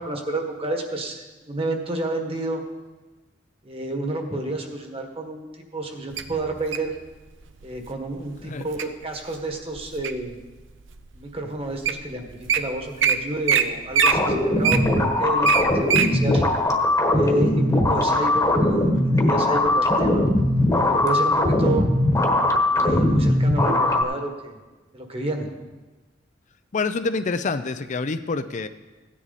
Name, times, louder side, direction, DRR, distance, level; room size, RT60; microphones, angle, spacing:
voice 1, 0.0-2.6 3.6-5.4 5.7-7.0 7.6-10.4 11.1-16.4 17.1-20.2 20.8-21.9 22.7-24.6 24.9-25.5, right 1 dB, 30° right, 3 dB, 1.6 m, -30 dB
Wild animals, 6.2-6.9 7.6-7.9 8.4-8.8 9.4-10.3 10.9-11.0 11.6-11.7 11.8-12.0 12.3-12.6 13.0-13.1 13.5-13.6 13.9-16.1 16.6-16.7, right 7 dB, 85° right, 0.7 m, -21 dB
sound 1, 14.0-24.0, left 1 dB, 15° left, 1.3 m, -20 dB
voice 2, 26.7-28.7, left 4 dB, 40° left, 10 dB, 0.5 m, -27 dB
16.5 x 10.0 x 4.1 m, 1.2 s
head